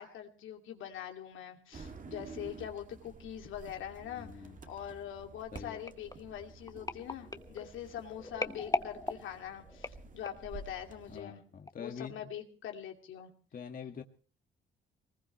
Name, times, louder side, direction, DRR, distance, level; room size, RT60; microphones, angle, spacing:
voice 1, 0.0-11.4 11.8-13.3, left 10 dB, 80° left, 2.5 m, -43 dB
sound 1, 1.7-11.2, right 4 dB, 40° right, 2.1 m, -51 dB
voice 2, 4.0-4.6 5.5-5.8 11.1-12.3 13.5-14.0, left 6 dB, 45° left, 1.7 m, -45 dB
sound 2, 5.6-10.6 11.2-11.4 11.7-11.8, left 2 dB, 20° left, 1.2 m, -40 dB
23.0 x 20.0 x 3.1 m
cardioid pair, 90°, 20 cm